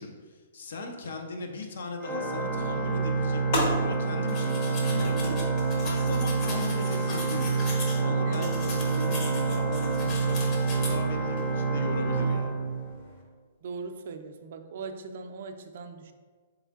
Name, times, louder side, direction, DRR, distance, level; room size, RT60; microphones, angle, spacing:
voice 1, 0.0-5.4 5.7-7.5 7.9-12.5, left 3 dB, 75° left, 4 dB, 0.6 m, -38 dB
Organ, 2.0-13.2, right 4 dB, 5° left, 0.6 m, -27 dB
sound 1, 2.8-13.2, left 1 dB, 50° left, 1.1 m, -39 dB
sound 2, 4.3-8.0 8.3-10.9, left 2 dB, 30° left, 0.8 m, -39 dB
voice 2, 13.6-16.1, right 4 dB, 60° right, 6 dB, 0.4 m, -39 dB
3.6 x 3.1 x 3.6 m, 1.5 s
hypercardioid pair, 155°, 0 cm